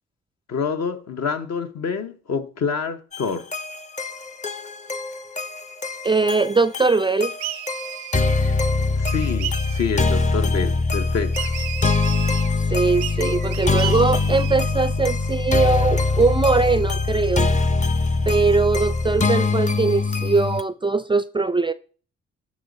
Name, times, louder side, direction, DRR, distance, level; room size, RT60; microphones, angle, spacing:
voice 1, 0.5-3.5 9.0-11.5, left 6 dB, 55° left, 0.9 m, -27 dB
sound 1, 3.1-20.6, left 3 dB, 25° left, 0.7 m, -23 dB
voice 2, 6.0-7.3 12.7-17.5 18.3-21.7, right 4 dB, 15° right, 0.4 m, -21 dB
sound 2, 7.4-8.5 9.1-10.0 11.3-12.5 13.0-14.7, right 14 dB, 80° right, 0.6 m, -33 dB
12.0 x 4.2 x 3.9 m
hypercardioid pair, 45°, 32 cm